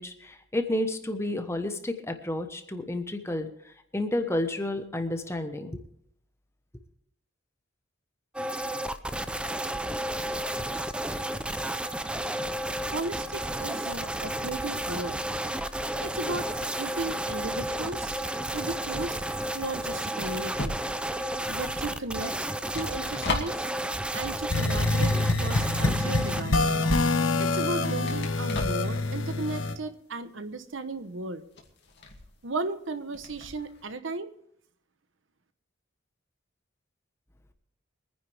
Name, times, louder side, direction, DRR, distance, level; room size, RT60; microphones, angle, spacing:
voice 1, 0.0-5.8, left 1 dB, 15° left, 7 dB, 1.1 m, -31 dB
sound 1, 8.3-26.4, right 1 dB, 5° right, 0.5 m, -32 dB
voice 2, 12.8-15.2 16.0-18.1 18.5-19.2 19.5-20.7 21.5-23.6 24.1-26.6 27.4-31.4 32.4-34.3, right 2 dB, 65° right, 11 dB, 1.0 m, -35 dB
sound 2, 18.8-25.5 25.8-33.9, left 3 dB, 55° left, 2.3 m, -40 dB
sound 3, 24.5-29.8, left 2 dB, 70° left, 1.2 m, -26 dB
24.5 x 10.0 x 3.5 m, 0.69 s
head